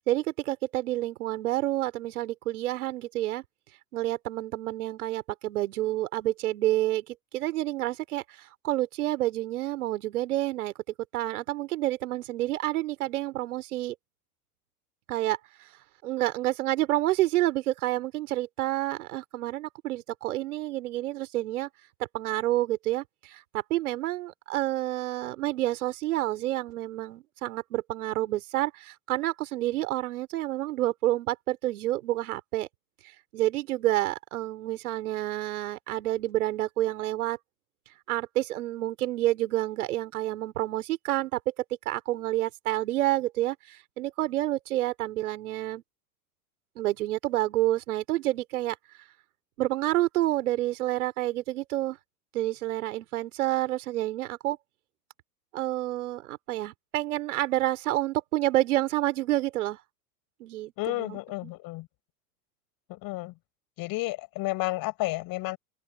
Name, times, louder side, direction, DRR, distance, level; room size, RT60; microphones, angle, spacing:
voice 1, 0.1-3.4 3.9-10.7 11.1-13.9 15.1-15.4 16.0-21.7 22.1-32.7 33.3-37.4 38.1-41.4 41.9-45.8 46.8-48.8 49.6-52.0 52.3-54.6 55.5-59.8 60.4-61.5, right 15 dB, 70° right, 4.0 m, -29 dB
voice 2, 60.8-61.9 62.9-63.3 63.8-65.6, left 20 dB, 50° left, 6.1 m, -31 dB
open air
hypercardioid pair, 90°, 46 cm